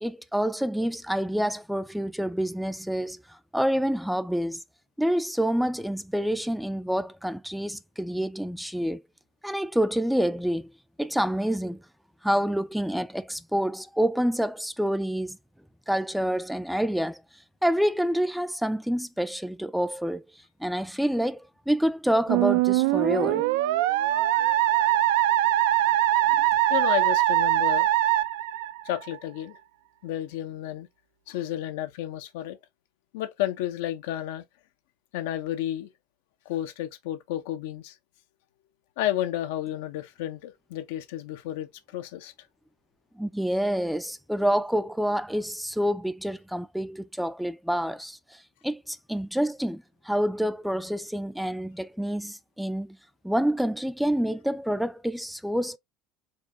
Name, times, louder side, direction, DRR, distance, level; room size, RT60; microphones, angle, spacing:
voice 1, 0.0-4.6 5.0-9.0 9.4-10.7 11.0-11.8 12.2-15.4 15.9-17.2 17.6-20.2 20.6-23.4 43.2-48.4 48.6-53.0 53.2-55.8, equal, ahead, 0.3 m, -27 dB
Musical instrument, 22.3-29.2, right 14 dB, 90° right, 0.4 m, -22 dB
voice 2, 26.7-27.9 28.8-29.6 30.0-30.9 31.3-32.6 33.1-34.4 35.1-35.9 36.5-38.0 39.0-42.3, left 12 dB, 90° left, 0.7 m, -31 dB
4.7 x 2.3 x 3.7 m
cardioid pair, 135°, 0 cm